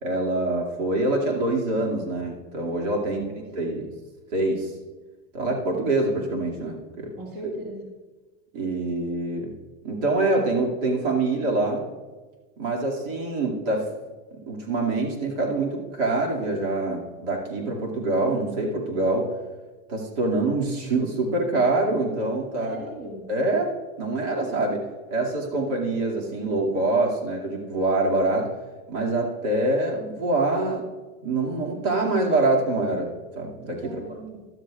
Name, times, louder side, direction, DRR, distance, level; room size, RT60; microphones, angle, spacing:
voice 1, 0.0-3.2 3.5-3.9 4.3-4.7 5.3-7.1 7.4-7.5 8.5-9.5 9.8-11.8 12.6-13.8 14.5-19.3 19.9-22.8 23.3-23.7 24.0-24.8 25.1-28.5 28.9-30.9 31.2-34.0, right 2 dB, 65° right, -1 dB, 2.6 m, -25 dB
voice 2, 3.0-3.4 7.2-7.8 22.6-23.3 33.8-34.4, right 1 dB, 35° right, -1 dB, 2.3 m, -38 dB
13.0 x 12.5 x 2.5 m, 1.3 s
supercardioid pair, 160°, 40 cm